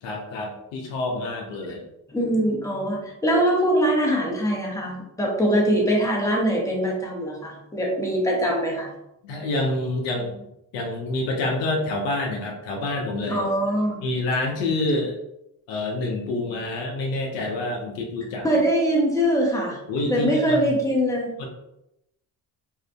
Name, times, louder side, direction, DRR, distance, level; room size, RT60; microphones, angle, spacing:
voice 1, 0.0-1.8 9.2-10.5 10.7-13.4 14.0-15.1 15.7-18.5 19.9-20.7 21.4-21.5, left 2 dB, 80° left, 1 dB, 0.7 m, -27 dB
voice 2, 2.1-8.9 13.3-14.0 18.4-19.8 20.1-21.3, equal, 5° left, -2 dB, 0.9 m, -22 dB
2.7 x 2.4 x 2.2 m, 0.84 s
hypercardioid pair, 50°, 44 cm